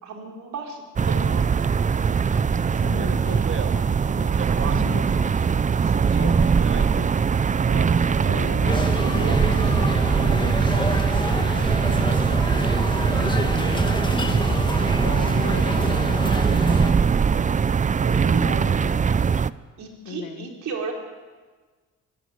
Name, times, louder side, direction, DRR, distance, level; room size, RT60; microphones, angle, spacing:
voice 1, 0.0-1.9 8.0-9.7 18.0-19.3 19.8-20.9, right 4 dB, 70° right, 1 dB, 4.4 m, -35 dB
sound 1, 1.0-19.5, right 6 dB, 25° right, 0.5 m, -21 dB
voice 2, 2.8-13.4 14.2-17.1 18.8-18.9 20.0-20.5, left 9 dB, 80° left, 8 dB, 1.9 m, -39 dB
Speech, 2.9-5.1 5.9-7.1 7.5-8.7 9.0-9.7, right 7 dB, 45° right, 1.2 m, -37 dB
sound 2, 8.7-16.9, left 2 dB, 15° left, 1.9 m, -28 dB
25.0 x 13.5 x 8.2 m, 1.4 s
cardioid pair, 90°, 30 cm